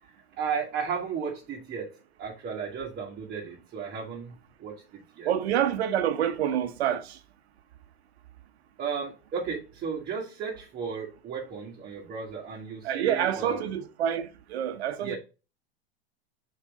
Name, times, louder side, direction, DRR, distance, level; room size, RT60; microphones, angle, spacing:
voice 1, 0.4-1.9 2.2-5.3 8.8-13.6 15.0-15.2, right 6 dB, 30° right, 1.9 m, -34 dB
voice 2, 5.2-7.2 12.8-15.2, right 10 dB, 90° right, 1.2 m, -27 dB
6.4 x 4.7 x 3.6 m
supercardioid pair, 135°, 31 cm